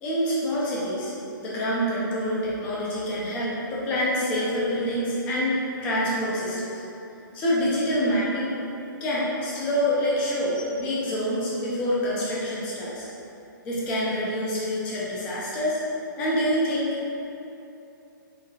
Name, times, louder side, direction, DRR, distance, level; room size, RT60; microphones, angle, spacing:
voice 1, 0.0-1.1 1.4-6.8 7.3-8.5 9.0-13.1 13.6-15.8 16.2-17.0, equal, 10° left, -7 dB, 0.3 m, -26 dB
3.2 x 3.2 x 2.2 m, 2.8 s
hypercardioid pair, 170°, 11 cm